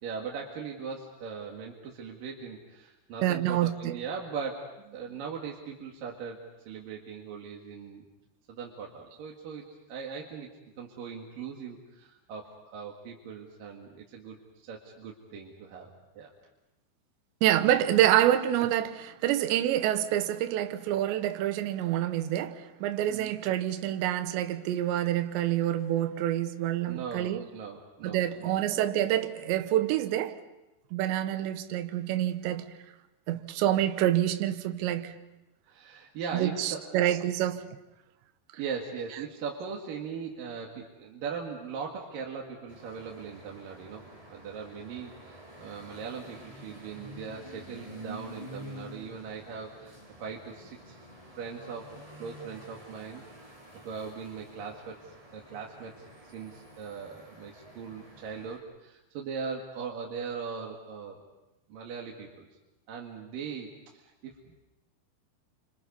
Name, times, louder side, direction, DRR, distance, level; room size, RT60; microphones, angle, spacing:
voice 1, 0.0-8.0 8.5-10.5 10.8-16.3 23.1-23.3 26.9-28.6 35.6-36.9 38.6-44.0 44.3-51.0 51.4-51.9 52.2-56.1 56.3-61.2 61.7-62.5 62.9-64.6, right 6 dB, 55° right, 3.2 m, -40 dB
voice 2, 3.2-3.9 17.4-27.4 28.0-30.4 30.9-32.7 33.3-35.1 36.3-37.7, right 12 dB, 75° right, 3.2 m, -27 dB
sound 1, 42.7-58.6, right 1 dB, 5° right, 6.8 m, -49 dB
29.5 x 26.0 x 5.4 m
omnidirectional pair, 5.4 m